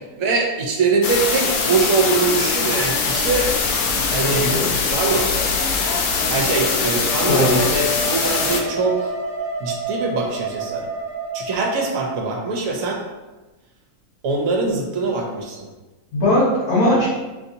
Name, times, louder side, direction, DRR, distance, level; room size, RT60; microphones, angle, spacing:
voice 1, 0.2-3.5 4.1-4.5 4.9-5.5 6.3-9.1 9.6-10.9 11.3-13.0 14.2-15.7, right 3 dB, 65° right, 1 dB, 1.1 m, -22 dB
sound 1, 1.0-8.6, left 4 dB, 90° left, 1.2 m, -22 dB
voice 2, 4.2-4.7 7.3-7.6 16.1-17.1, left 1 dB, 70° left, -8 dB, 2.0 m, -18 dB
Wind instrument woodwind instrument, 7.0-12.5, right 1 dB, 20° left, 1.4 m, -29 dB
5.4 x 2.7 x 2.6 m, 1.1 s
omnidirectional pair, 1.6 m